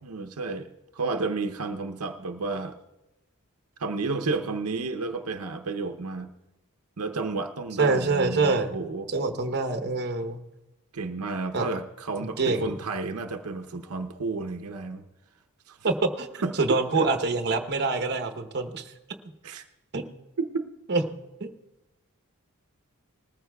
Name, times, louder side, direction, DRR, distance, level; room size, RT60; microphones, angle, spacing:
voice 1, 0.0-2.8 3.8-6.3 7.0-9.1 10.9-15.0 15.7-15.8 16.4-17.1 19.4-19.7 20.4-20.7, right 3 dB, 80° right, 5 dB, 0.7 m, -31 dB
voice 2, 7.8-8.8 9.1-10.4 11.5-11.7 12.4-12.7 15.8-18.9 19.9-20.0 20.9-21.0 21.4-21.5, right 3 dB, 50° right, 6 dB, 0.9 m, -25 dB
20.0 x 14.0 x 2.3 m, 1.0 s
head